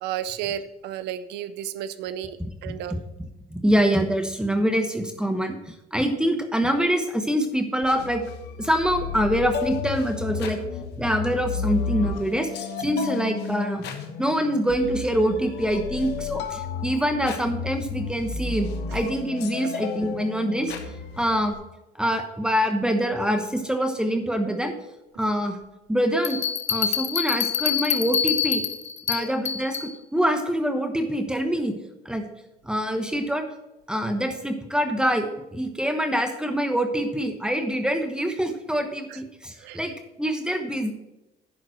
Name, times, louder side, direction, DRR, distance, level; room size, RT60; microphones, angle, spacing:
voice 1, 0.0-2.4 2.6-3.0 29.2-29.3 39.1-39.2 39.6-39.8, right 10 dB, 85° right, 13 dB, 0.6 m, -32 dB
voice 2, 2.4-8.2 8.6-10.6 11.0-13.8 14.2-20.7 21.2-21.6 22.0-24.7 25.2-25.6 25.9-26.4 26.7-28.6 29.1-31.7 32.0-32.2 32.6-33.5 33.9-39.9 40.2-40.9, equal, 5° right, 5 dB, 1.0 m, -25 dB
sound 1, 7.8-21.5, left 6 dB, 80° left, 1.2 m, -33 dB
Bell, 26.2-29.9, left 8 dB, 40° left, 0.7 m, -26 dB
11.0 x 3.9 x 7.6 m, 0.96 s
cardioid pair, 110°, 17 cm